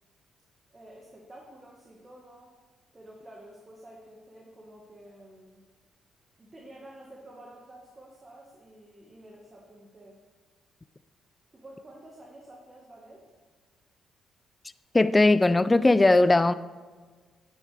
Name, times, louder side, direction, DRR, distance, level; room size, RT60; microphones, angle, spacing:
voice 1, 0.7-2.6 2.9-5.6 6.4-10.2 11.5-13.2, right 1 dB, 25° right, -1 dB, 1.5 m, -50 dB
voice 2, 14.9-16.5, left 2 dB, 15° left, 14 dB, 0.4 m, -19 dB
9.5 x 8.6 x 3.4 m, 1.4 s
cardioid pair, 90°, 0 cm